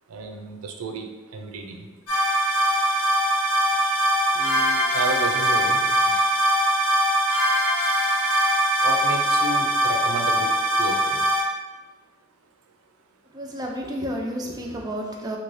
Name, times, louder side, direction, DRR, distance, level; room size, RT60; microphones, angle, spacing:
voice 1, 0.1-1.9 3.8-6.3 8.8-11.3, right 3 dB, 80° right, 4 dB, 0.4 m, -33 dB
sound 1, 2.1-11.4, right 1 dB, 75° left, 1.0 m, -21 dB
voice 2, 13.3-15.4, equal, 20° right, 0 dB, 0.3 m, -31 dB
2.7 x 2.6 x 3.0 m, 1.2 s
head